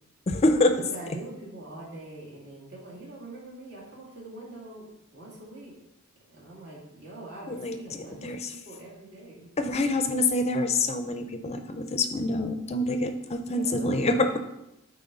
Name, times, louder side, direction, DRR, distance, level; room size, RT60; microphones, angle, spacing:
voice 1, 0.3-0.7 7.5-8.5 9.6-14.3, left 2 dB, 30° left, 8 dB, 0.5 m, -26 dB
voice 2, 0.8-5.7 6.3-9.5 13.5-14.4, right 2 dB, 60° right, -4 dB, 2.5 m, -44 dB
9.4 x 4.1 x 3.8 m, 0.86 s
head